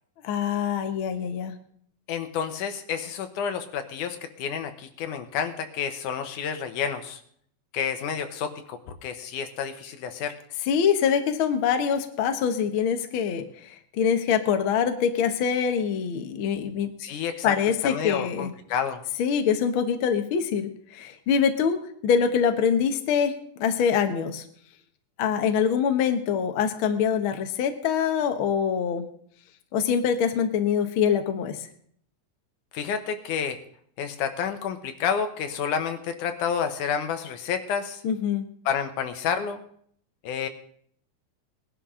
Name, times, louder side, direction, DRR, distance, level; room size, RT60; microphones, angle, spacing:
voice 1, 0.2-1.5 10.7-16.9 17.4-18.5 19.2-24.4 25.2-29.1 29.7-31.7 38.0-38.5, left 7 dB, 55° left, 6 dB, 1.5 m, -24 dB
voice 2, 2.1-7.2 7.7-10.4 17.0-17.6 17.8-19.0 32.7-33.6 34.0-38.0 38.7-39.6 40.2-40.5, left 7 dB, 80° left, 7 dB, 2.6 m, -29 dB
20.0 x 11.0 x 3.7 m, 0.63 s
omnidirectional pair, 3.6 m